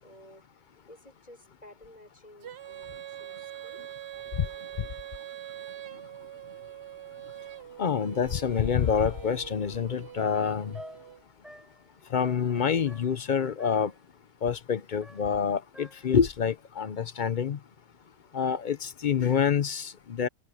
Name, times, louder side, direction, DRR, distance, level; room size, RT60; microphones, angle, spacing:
voice 1, 0.0-3.8, left 1 dB, 30° left, 5.1 m, -53 dB
Female singing, 2.4-11.2, right 11 dB, 55° right, 0.9 m, -43 dB
sound 1, 5.6-12.6, left 3 dB, 90° left, 4.7 m, -56 dB
voice 2, 7.8-10.8 12.1-13.9 14.4-17.6 18.3-20.3, left 7 dB, 45° left, 0.6 m, -27 dB
sound 2, 10.1-13.3 13.6-14.1 15.0-16.2, equal, ahead, 1.5 m, -48 dB
omnidirectional pair, 1.4 m